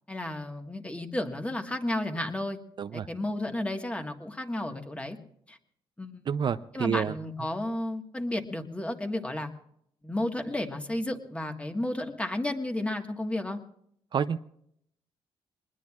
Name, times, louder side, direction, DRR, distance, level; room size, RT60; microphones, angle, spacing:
voice 1, 0.1-2.6 2.9-5.2 5.5-5.6 6.0-6.3 6.7-9.5 10.0-13.6, left 1 dB, 10° left, 5 dB, 1.6 m, -32 dB
voice 2, 6.3-7.1 14.1-14.4, right 7 dB, 50° right, 11 dB, 0.5 m, -28 dB
23.5 x 20.0 x 2.4 m, 0.71 s
cardioid pair, 105°, 10 cm